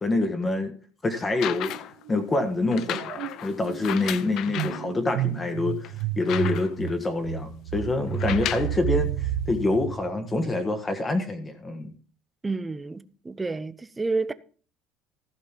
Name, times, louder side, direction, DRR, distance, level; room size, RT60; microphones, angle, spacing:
voice 1, 0.0-0.7 1.0-1.7 2.1-5.8 6.2-11.9, left 2 dB, 20° left, 1.3 m, -26 dB
sound 1, 1.2-2.0 2.7-4.9 5.4-5.5 5.8-6.9 8.1-8.8 9.7-9.8, left 12 dB, 55° left, 0.6 m, -34 dB
sound 2, 1.5-1.8 2.1-10.8, right 11 dB, 80° right, 1.3 m, -32 dB
voice 2, 12.4-14.3, right 3 dB, 15° right, 0.7 m, -30 dB
14.5 x 5.4 x 5.8 m
cardioid pair, 140°, 0 cm